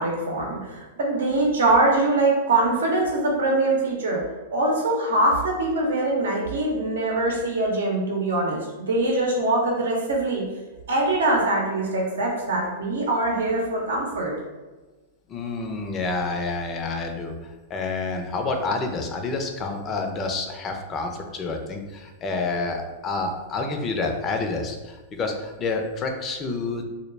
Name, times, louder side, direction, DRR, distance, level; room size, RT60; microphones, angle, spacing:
voice 1, 0.0-10.5 10.9-14.3, right 2 dB, 80° right, -1 dB, 0.7 m, -23 dB
voice 2, 15.3-17.3 17.7-26.8, left 3 dB, 30° left, 3 dB, 0.4 m, -28 dB
2.2 x 2.1 x 3.2 m, 1.2 s
hypercardioid pair, 110°, 0 cm